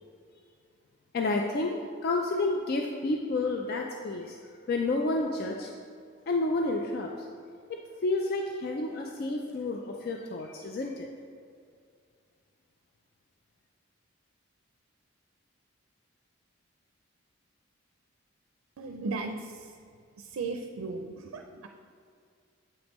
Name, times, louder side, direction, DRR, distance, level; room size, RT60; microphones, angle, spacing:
voice 1, 1.1-1.7 2.0-4.4 4.7-5.7 6.3-7.1 7.7-11.1, left 2 dB, 45° left, 2 dB, 0.3 m, -30 dB
voice 2, 18.8-19.7 20.2-21.7, right 3 dB, 80° right, 4 dB, 0.4 m, -36 dB
7.8 x 5.2 x 3.0 m, 2.2 s
head